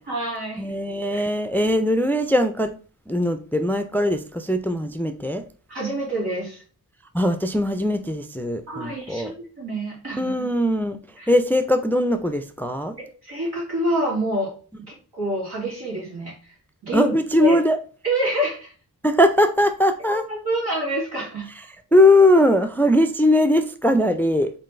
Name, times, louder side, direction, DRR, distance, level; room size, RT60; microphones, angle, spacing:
voice 1, 0.0-0.8 1.1-1.2 5.7-6.6 8.7-10.5 11.2-11.3 13.0-14.5 14.9-16.6 16.8-17.1 17.4-17.6 18.0-18.7 20.0-21.5, right 1 dB, 85° right, 2.6 m, -27 dB
voice 2, 0.6-2.7 3.1-5.4 7.1-9.3 10.2-11.0 11.3-13.0 16.9-17.8 19.0-20.2 21.9-24.5, left 1 dB, 5° left, 0.3 m, -20 dB
4.2 x 4.0 x 3.2 m
wide cardioid pair, 75°, 38 cm